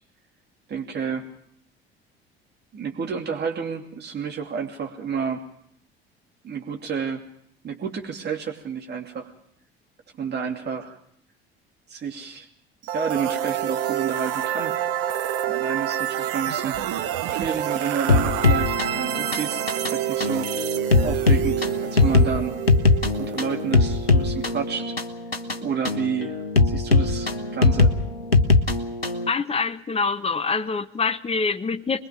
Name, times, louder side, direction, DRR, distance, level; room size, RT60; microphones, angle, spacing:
voice 1, 0.7-1.3 2.7-5.4 6.4-7.2 7.6-9.3 10.2-11.0 11.9-12.5 12.9-14.8 15.5-16.8 17.3-20.5 21.0-22.6 23.2-24.9 25.6-26.4 26.7-27.9, right 6 dB, 35° right, 2 dB, 2.7 m, -30 dB
sound 1, 12.8-24.7, right 11 dB, 55° right, 1.3 m, -28 dB
sound 2, 18.1-29.3, left 3 dB, 90° left, 0.9 m, -21 dB
voice 2, 29.3-32.1, left 4 dB, 20° left, 12 dB, 1.1 m, -25 dB
25.0 x 21.0 x 5.2 m, 0.66 s
figure-of-eight pair, 60°, 30 cm